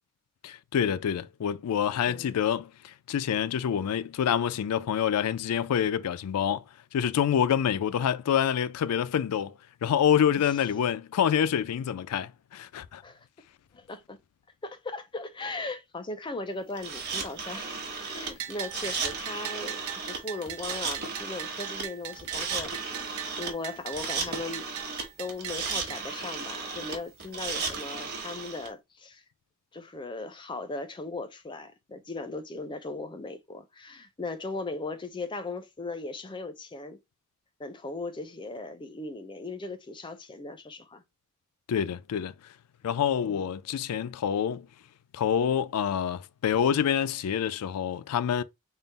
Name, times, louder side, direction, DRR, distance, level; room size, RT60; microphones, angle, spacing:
voice 1, 0.4-6.6 6.9-9.5 9.8-13.0 41.7-42.3 42.8-44.7 45.1-48.4, left 8 dB, 90° left, 0.3 m, -27 dB
voice 2, 13.7-14.2 14.6-19.8 20.1-24.7 25.2-29.2 29.7-37.0 37.6-41.0 43.2-43.5, left 3 dB, 20° left, 0.5 m, -38 dB
sound 1, 16.8-28.7, right 4 dB, 45° right, 1.0 m, -35 dB
Bell, 18.4-26.0, right 12 dB, 65° right, 0.4 m, -40 dB
3.7 x 2.0 x 3.9 m
head